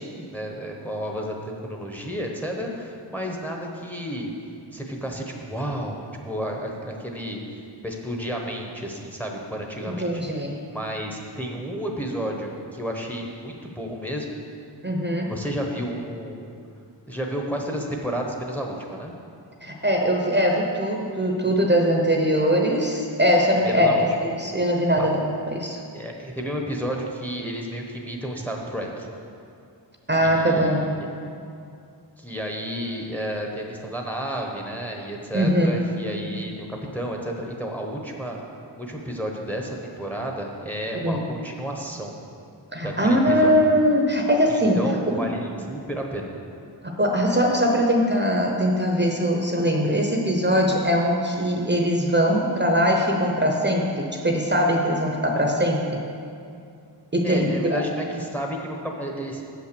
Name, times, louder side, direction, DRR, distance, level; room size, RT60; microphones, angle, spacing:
voice 1, 0.0-1.4 1.6-4.3 4.7-7.4 7.8-10.2 10.7-14.3 15.3-16.5 17.1-19.1 23.6-24.0 25.0-25.1 25.9-29.1 30.2-31.1 32.2-38.4 38.8-42.1 42.8-43.6 44.5-46.3 57.2-59.5, equal, 5° left, 1 dB, 0.9 m, -31 dB
voice 2, 9.9-10.5 14.8-15.4 19.6-25.8 30.1-30.9 35.3-35.8 41.0-41.3 42.7-45.2 46.8-55.9 57.1-57.8, equal, 25° right, 0 dB, 0.8 m, -21 dB
7.1 x 5.8 x 6.8 m, 2.4 s
wide cardioid pair, 85°, 44 cm